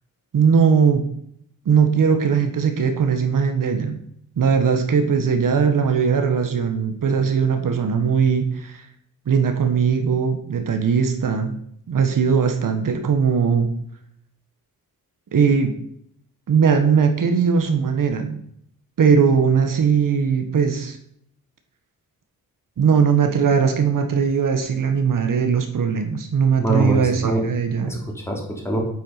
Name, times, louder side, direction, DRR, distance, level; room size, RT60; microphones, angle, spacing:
voice 1, 0.3-1.1 1.6-4.0 4.4-8.8 9.3-11.6 11.9-13.7 15.3-15.7 16.5-18.4 19.0-21.0 22.8-27.9, right 6 dB, 60° right, 6 dB, 1.5 m, -19 dB
voice 2, 26.6-27.4 27.8-28.8, right 1 dB, 5° left, 0 dB, 3.0 m, -24 dB
9.0 x 9.0 x 5.8 m, 0.68 s
wide cardioid pair, 155°, 36 cm